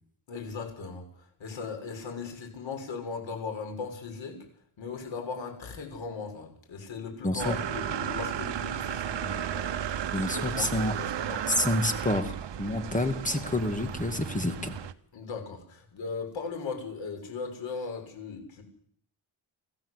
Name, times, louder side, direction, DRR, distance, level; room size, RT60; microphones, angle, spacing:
voice 1, 0.3-4.5 4.8-9.8 10.2-11.6 15.1-18.6, left 5 dB, 85° left, 3 dB, 6.6 m, -38 dB
voice 2, 7.2-7.6 10.1-10.9 11.5-12.3 12.6-14.7, left 1 dB, 15° left, 7 dB, 2.2 m, -28 dB
sound 1, 7.4-14.9, right 9 dB, 70° right, 1.2 m, -34 dB
25.5 x 15.5 x 8.3 m, 0.62 s
wide cardioid pair, 145°, 44 cm